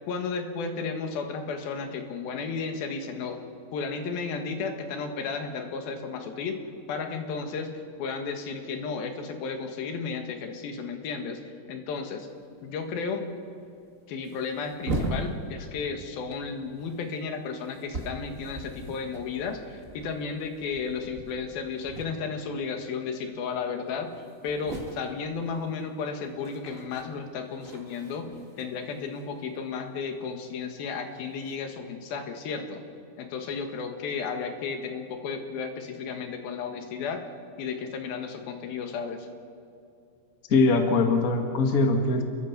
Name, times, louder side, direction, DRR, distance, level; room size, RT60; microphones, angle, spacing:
voice 1, 0.1-3.4 3.7-6.6 6.9-7.7 8.0-11.4 11.7-12.3 12.6-13.3 14.1-24.1 24.4-28.3 28.6-32.8 33.2-37.2 37.6-39.3, left 5 dB, 90° left, 5 dB, 3.4 m, -33 dB
sound 1, 12.4-12.6 12.8-12.9 13.7-13.8 14.1-16.0 16.3-22.6 22.8-23.2 23.6-23.7 23.9-30.2 31.0-31.6, right 1 dB, 25° right, 2.0 m, -39 dB
voice 2, 40.5-42.2, left 3 dB, 35° left, 4 dB, 1.5 m, -22 dB
29.0 x 22.0 x 6.0 m, 2.6 s
omnidirectional pair, 4.1 m